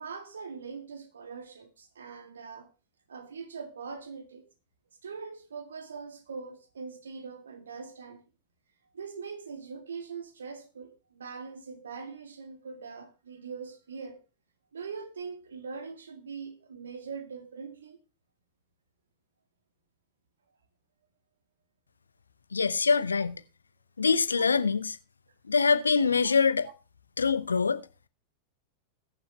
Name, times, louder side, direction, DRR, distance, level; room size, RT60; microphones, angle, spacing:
voice 1, 0.0-2.7 3.1-4.5 5.0-8.2 8.9-14.2 14.7-18.0 22.9-23.0 24.3-24.4 26.2-26.3, right 5 dB, 70° right, 1.9 m, -42 dB
voice 2, 22.5-23.4 24.0-25.0 25.5-26.7 27.2-27.8, left 5 dB, 75° left, 0.8 m, -24 dB
21.0 x 7.0 x 3.1 m
figure-of-eight pair, 90°, 0 cm